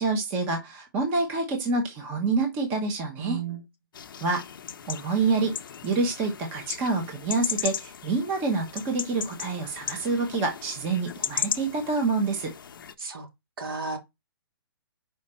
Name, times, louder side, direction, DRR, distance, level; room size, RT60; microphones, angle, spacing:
voice 1, 0.0-3.4 4.2-4.4 4.9-5.6 5.8-12.5, right 3 dB, 15° right, 0.9 m, -27 dB
voice 2, 3.2-3.6 13.0-13.3 13.6-14.0, right 5 dB, 70° right, 3.1 m, -33 dB
sound 1, 3.9-12.9, left 8 dB, 60° left, 0.7 m, -36 dB
5.1 x 5.0 x 4.3 m
hypercardioid pair, 170°, 13 cm